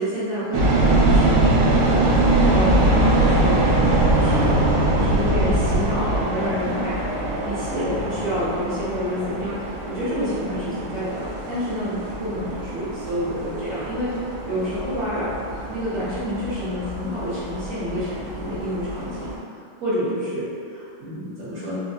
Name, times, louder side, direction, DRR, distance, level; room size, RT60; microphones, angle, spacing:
voice 1, 0.0-19.3 19.8-21.8, equal, 55° right, -12 dB, 1.1 m, -29 dB
sound 1, 0.5-19.4, right 2 dB, 75° right, 1.0 m, -22 dB
sound 2, 1.1-8.5, left 2 dB, 75° left, 1.1 m, -38 dB
4.1 x 2.1 x 2.6 m, 2.3 s
omnidirectional pair, 2.4 m